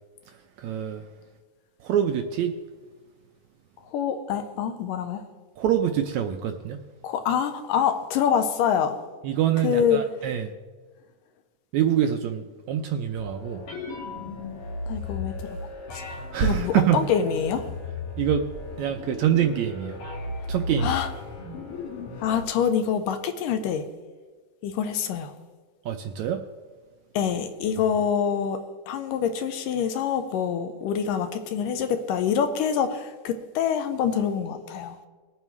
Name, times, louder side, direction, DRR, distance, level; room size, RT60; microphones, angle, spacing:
voice 1, 0.3-1.0 1.8-2.5 5.6-6.8 9.2-10.5 11.7-13.6 16.3-17.1 18.2-18.5 18.8-20.0 20.5-20.9 25.8-26.4, right 10 dB, 80° right, 5 dB, 1.7 m, -25 dB
voice 2, 3.9-5.2 7.0-9.0 9.6-10.0 14.9-15.6 15.9-16.0 16.4-17.7 20.8-21.1 22.2-23.9 24.6-25.3 27.1-28.6 28.9-35.0, left 7 dB, 85° left, 8 dB, 2.4 m, -25 dB
sound 1, 13.2-22.4, left 2 dB, 50° left, 2.3 m, -35 dB
20.5 x 9.0 x 3.2 m, 1.4 s
omnidirectional pair, 3.8 m